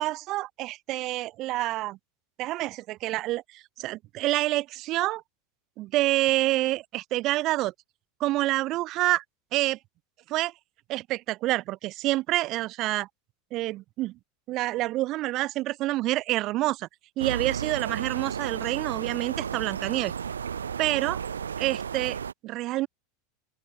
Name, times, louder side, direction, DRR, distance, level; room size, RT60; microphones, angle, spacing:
voice 1, 0.0-2.0 2.4-5.2 5.8-7.7 8.2-9.2 9.5-9.8 10.3-10.5 10.9-13.1 13.5-14.1 14.5-16.9 17.2-20.1 20.8-21.2 21.6-22.2 22.4-22.9, right 17 dB, 45° right, 3.5 m, -27 dB
sound 1, 17.2-22.3, right 7 dB, 75° right, 6.7 m, -33 dB
open air
figure-of-eight pair, 85°, 0 cm